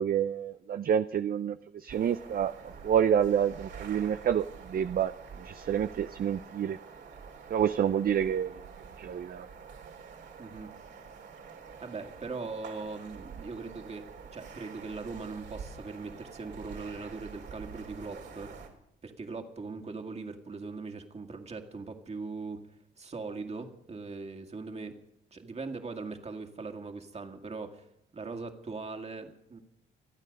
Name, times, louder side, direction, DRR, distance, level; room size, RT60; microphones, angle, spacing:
voice 1, 0.0-5.1 5.4-6.8 7.5-8.6 9.0-9.5, right 9 dB, 50° right, 11 dB, 0.6 m, -28 dB
sound 1, 1.9-18.7, right 6 dB, 65° right, 3.3 m, -47 dB
voice 2, 10.4-10.7 11.8-18.5 19.0-22.6 23.0-25.0 25.3-27.9 28.1-29.6, right 4 dB, 35° right, 4 dB, 2.2 m, -40 dB
27.0 x 9.1 x 5.4 m, 0.78 s
cardioid pair, 90°, 20 cm